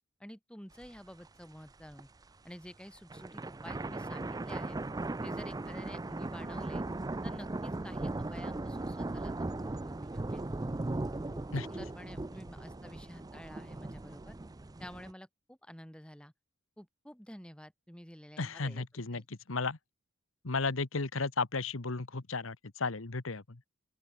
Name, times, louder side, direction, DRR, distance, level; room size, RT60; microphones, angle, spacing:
voice 1, 0.2-2.1 2.4-4.8 5.2-6.8 7.2-10.4 11.3-14.4 14.8-16.3 16.8-18.9 19.1-19.3, equal, 5° left, 3.9 m, -50 dB
sound 1, 0.8-0.9 1.3-1.4 1.8-2.2 3.0-15.1, right 2 dB, 20° right, 0.5 m, -38 dB
voice 2, 18.4-19.2 19.5-19.8 20.4-23.4, left 4 dB, 80° left, 1.3 m, -34 dB
open air
head